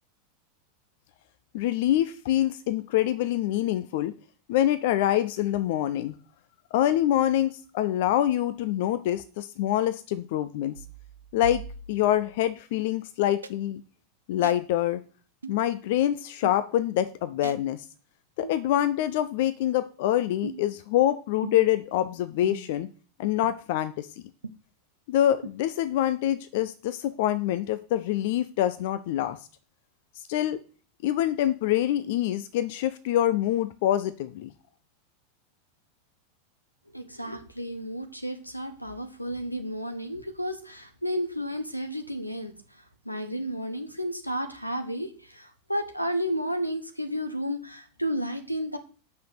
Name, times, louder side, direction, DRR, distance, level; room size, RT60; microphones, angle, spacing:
voice 1, 1.5-4.1 4.5-6.1 6.7-10.8 11.3-11.6 11.9-13.8 14.3-15.0 15.5-17.8 18.4-22.9 23.2-24.1 25.1-29.4 30.3-30.6 31.0-34.5, left 12 dB, 50° left, 13 dB, 0.7 m, -25 dB
sound 1, 10.7-12.5 13.4-13.5 14.4-14.6 15.4-15.6 16.4-16.6 17.4-17.6 18.4-18.6 19.4-19.5 20.4-20.7 21.4-21.8 22.4-22.8 23.4-23.5 24.4-24.5 25.4-25.5, right 5 dB, 75° right, 0.6 m, -40 dB
voice 2, 36.9-48.8, equal, 90° left, 9 dB, 1.3 m, -32 dB
8.5 x 6.0 x 6.8 m, 0.38 s
figure-of-eight pair, 90°, 0 cm